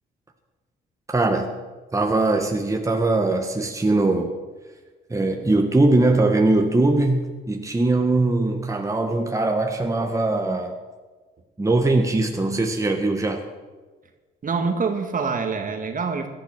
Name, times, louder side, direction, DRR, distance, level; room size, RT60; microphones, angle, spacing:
voice 1, 1.1-1.5 1.9-4.3 5.1-10.8 11.6-13.4, right 2 dB, 15° right, 3 dB, 1.6 m, -21 dB
voice 2, 14.4-16.3, right 4 dB, 45° right, 6 dB, 2.0 m, -25 dB
17.5 x 11.5 x 6.2 m, 1.3 s
cardioid pair, 90°, 20 cm